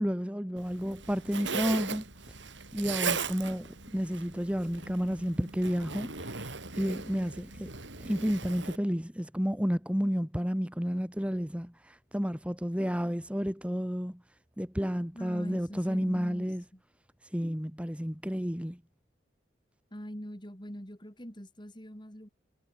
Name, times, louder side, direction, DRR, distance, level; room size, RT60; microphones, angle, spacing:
voice 1, 0.0-2.0 2.7-7.7 8.0-14.2 14.6-16.6 17.2-18.8, equal, 5° right, 1.7 m, -31 dB
Zipper (clothing), 0.6-8.8, right 5 dB, 75° right, 6.0 m, -38 dB
voice 2, 15.1-16.8 19.9-22.3, equal, 25° left, 4.7 m, -43 dB
head